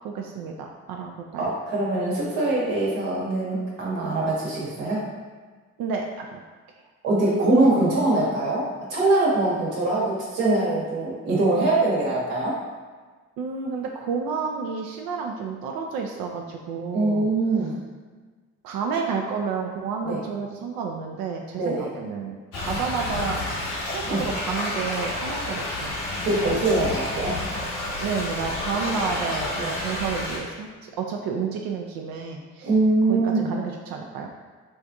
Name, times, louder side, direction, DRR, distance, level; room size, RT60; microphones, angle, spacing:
voice 1, 0.0-1.5 5.8-6.4 13.4-17.3 18.6-23.4 23.8-25.9 28.0-29.5 29.8-32.7 33.1-34.3, right 5 dB, 55° right, 2 dB, 0.5 m, -30 dB
voice 2, 1.4-5.0 7.0-8.6 8.9-12.6 16.9-17.8 20.0-20.2 21.5-21.9 24.1-24.2 26.2-27.4 29.6-29.7 32.6-33.5, right 2 dB, 70° right, -6 dB, 1.3 m, -23 dB
Thunder / Rain, 22.5-30.4, left 1 dB, 65° left, 1.2 m, -30 dB
5.1 x 2.5 x 2.4 m, 1.4 s
figure-of-eight pair, 45°, 44 cm